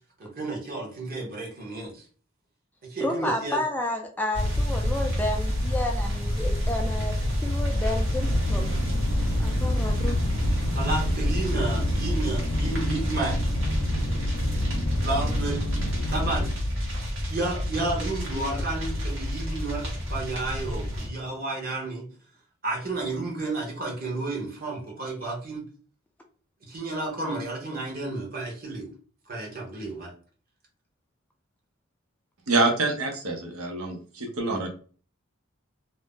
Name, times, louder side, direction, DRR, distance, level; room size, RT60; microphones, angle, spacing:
voice 1, 0.2-2.0 2.8-3.6 10.7-13.4 15.0-15.7 16.1-16.5 17.3-22.1 22.6-25.6 26.6-28.9 29.3-30.1, right 2 dB, 45° right, -1 dB, 0.9 m, -31 dB
voice 2, 3.0-7.1 7.4-8.7 9.4-10.2, left 1 dB, 10° left, 2 dB, 0.3 m, -31 dB
sound 1, 4.3-21.1, equal, 60° right, 1.2 m, -28 dB
sound 2, 8.2-16.5, left 1 dB, 70° left, 0.6 m, -29 dB
voice 3, 32.5-34.7, right 2 dB, 90° right, 3 dB, 0.7 m, -26 dB
2.6 x 2.0 x 3.6 m, 0.41 s
head